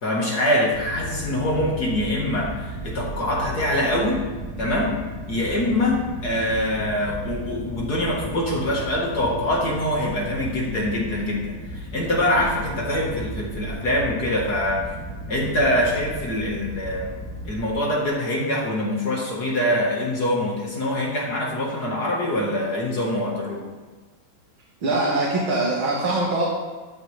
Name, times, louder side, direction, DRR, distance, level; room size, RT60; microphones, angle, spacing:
voice 1, 0.0-4.2 4.6-5.0 5.3-14.9 15.3-17.1 17.4-23.7, left 1 dB, 50° left, -3 dB, 2.3 m, -24 dB
sound 1, 0.7-17.7, right 1 dB, 10° left, 4.1 m, -35 dB
voice 2, 24.8-26.4, right 2 dB, 75° right, -5 dB, 2.8 m, -22 dB
13.5 x 11.5 x 3.5 m, 1.3 s
omnidirectional pair, 2.2 m